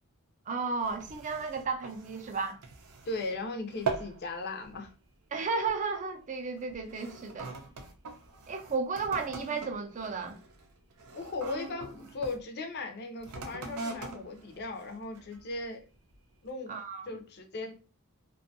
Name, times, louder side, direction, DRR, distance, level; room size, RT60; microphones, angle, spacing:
voice 1, 0.5-2.6 5.3-7.5 8.5-10.4 16.7-17.2, right 4 dB, 35° right, 0.4 m, -33 dB
sound 1, 0.8-3.4 3.7-4.2 4.6-4.9 5.6-5.8 6.6-12.4 13.2-15.5 16.1-16.2, right 4 dB, 85° right, 0.5 m, -41 dB
voice 2, 3.1-4.9 11.1-15.8 16.4-16.8 17.1-17.7, left 3 dB, 45° left, 0.5 m, -37 dB
2.6 x 2.3 x 2.6 m
head